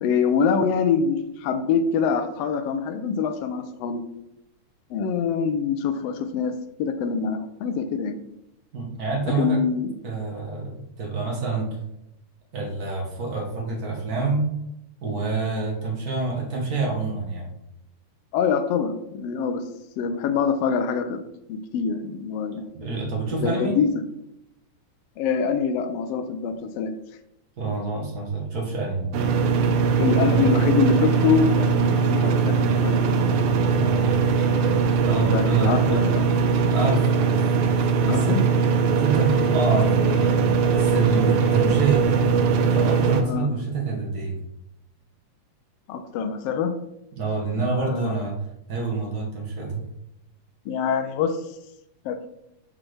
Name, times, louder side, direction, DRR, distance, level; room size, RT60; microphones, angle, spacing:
voice 1, 0.0-4.0 4.9-6.5 6.8-8.2 9.4-9.9 18.3-19.6 20.0-21.2 21.5-22.6 23.4-23.9 25.2-26.9 30.0-33.2 35.3-36.2 38.1-38.4 43.3-43.5 45.9-46.7 47.5-48.2 50.6-51.4 52.0-52.2, left 6 dB, 85° left, 8 dB, 1.3 m, -24 dB
voice 2, 8.7-9.6 10.0-11.7 12.5-14.4 15.0-17.5 22.7-23.8 27.6-29.1 30.3-30.5 33.6-34.2 34.7-36.0 36.7-38.7 39.0-40.3 40.6-42.1 42.6-44.4 47.1-48.3 48.7-49.8, right 3 dB, 55° right, -2 dB, 1.0 m, -27 dB
sound 1, 29.1-43.2, right 5 dB, 80° right, 1.4 m, -21 dB
6.0 x 6.0 x 3.3 m, 0.85 s
omnidirectional pair, 3.4 m